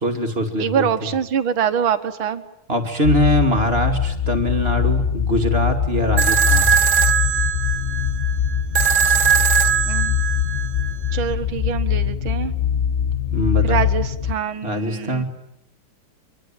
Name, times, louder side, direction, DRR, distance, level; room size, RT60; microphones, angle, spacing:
voice 1, 0.0-1.1 2.7-6.7 13.3-13.8 14.6-15.2, equal, 30° right, 4 dB, 2.9 m, -22 dB
voice 2, 0.6-2.4 9.8-10.2 11.1-12.5 13.6-15.2, right 8 dB, 90° right, 10 dB, 2.2 m, -24 dB
sound 1, 3.0-14.3, left 8 dB, 30° left, 1.2 m, -22 dB
sound 2, 6.2-11.2, right 8 dB, 75° right, 2.3 m, -20 dB
25.0 x 24.5 x 9.0 m, 0.77 s
omnidirectional pair, 2.2 m